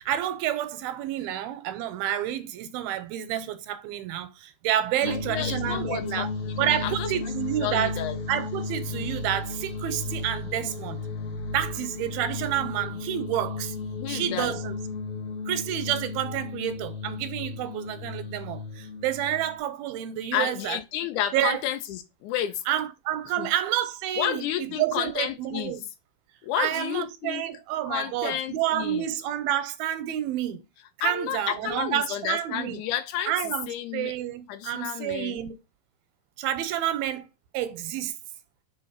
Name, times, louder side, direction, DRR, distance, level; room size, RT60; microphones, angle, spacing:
voice 1, 0.0-6.3 6.6-8.0 8.3-11.0 11.5-13.8 14.1-14.8 15.5-20.8 21.3-21.6 22.7-25.8 26.6-30.6 31.0-32.8 33.3-33.7 33.9-35.6 36.4-37.3 37.5-38.1, right 11 dB, 85° right, 2.4 m, -29 dB
voice 2, 5.0-7.3 7.6-8.2 14.0-14.6 20.3-22.6 23.4-23.5 24.2-25.8 26.4-27.4 27.8-29.1 31.0-33.3 33.7-34.1 34.5-35.4, left 11 dB, 85° left, 1.7 m, -31 dB
sound 1, 5.0-19.6, left 3 dB, 65° left, 1.4 m, -34 dB
7.0 x 3.7 x 5.6 m
omnidirectional pair, 4.5 m